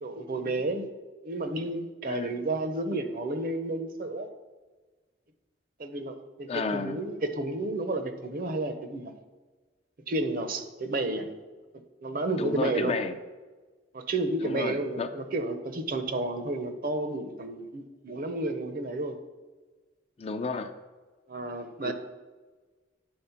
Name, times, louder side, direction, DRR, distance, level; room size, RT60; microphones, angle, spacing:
voice 1, 0.0-0.9 1.2-4.3 5.8-9.1 10.1-11.3 12.0-13.0 13.9-19.2 21.3-21.9, right 2 dB, 50° right, 8 dB, 0.7 m, -31 dB
voice 2, 2.1-2.4 6.5-7.0 12.4-13.1 14.4-15.1 20.2-20.7 21.8-21.9, left 4 dB, 35° left, 9 dB, 0.4 m, -32 dB
9.6 x 4.2 x 5.8 m, 1.3 s
head